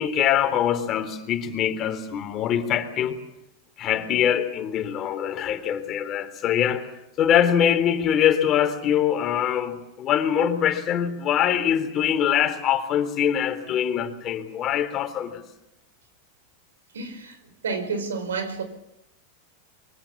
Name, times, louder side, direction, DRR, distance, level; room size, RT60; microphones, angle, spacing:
voice 1, 0.0-3.2 3.8-15.4, left 9 dB, 40° left, 3.6 m, -23 dB
voice 2, 16.9-17.4 17.6-18.6, right 4 dB, 85° right, 4.9 m, -29 dB
24.5 x 23.5 x 7.3 m
hypercardioid pair, 100°, 0 cm